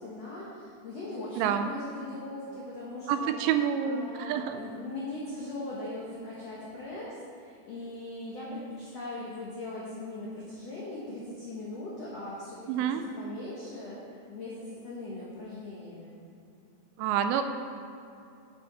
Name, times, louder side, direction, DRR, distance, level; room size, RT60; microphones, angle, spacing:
voice 1, 0.0-3.3 3.8-16.2, left 2 dB, 80° left, -6 dB, 1.4 m, -40 dB
voice 2, 1.4-1.7 3.1-4.6 12.7-13.0 17.0-17.4, right 9 dB, 85° right, 8 dB, 2.7 m, -28 dB
10.5 x 8.4 x 4.1 m, 2.6 s
omnidirectional pair, 5.1 m